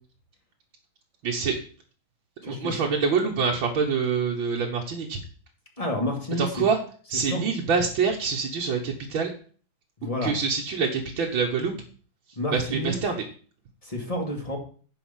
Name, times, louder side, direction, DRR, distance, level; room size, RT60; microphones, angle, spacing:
voice 1, 1.2-1.6 2.4-5.2 6.4-6.8 7.1-9.3 10.2-11.7 12.5-13.2, right 5 dB, 75° right, -2 dB, 2.0 m, -25 dB
voice 2, 2.4-2.7 5.8-6.6 7.3-7.5 10.0-10.3 12.4-13.0 13.8-14.6, left 1 dB, 15° left, 1 dB, 2.3 m, -29 dB
10.5 x 5.3 x 7.3 m, 0.43 s
omnidirectional pair, 2.2 m